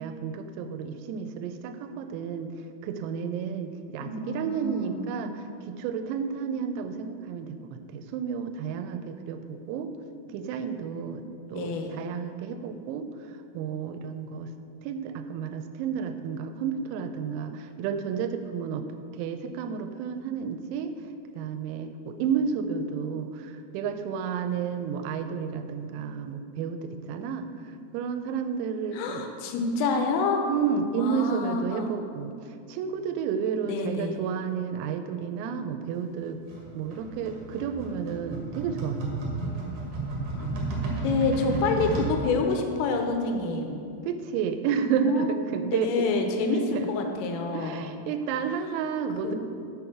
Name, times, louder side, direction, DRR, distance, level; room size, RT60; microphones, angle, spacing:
voice 1, 0.0-2.5 2.8-9.9 10.3-11.2 11.5-13.1 13.5-14.5 14.8-20.9 21.3-27.5 27.9-29.3 30.5-36.4 36.8-39.4 44.1-46.1 46.7-46.9 47.5-49.4, right 6 dB, 90° right, 8 dB, 3.3 m, -31 dB
voice 2, 4.0-5.1 11.6-11.9 28.9-30.4 30.9-31.9 33.7-34.1 40.4-40.5 41.0-43.8 45.0-45.3 45.7-47.8 49.2-49.4, left 4 dB, 80° left, 4 dB, 3.3 m, -28 dB
sound 1, 36.5-42.1, right 3 dB, 70° right, 2.0 m, -32 dB
7.0 x 6.5 x 5.8 m, 2.5 s
omnidirectional pair, 6.0 m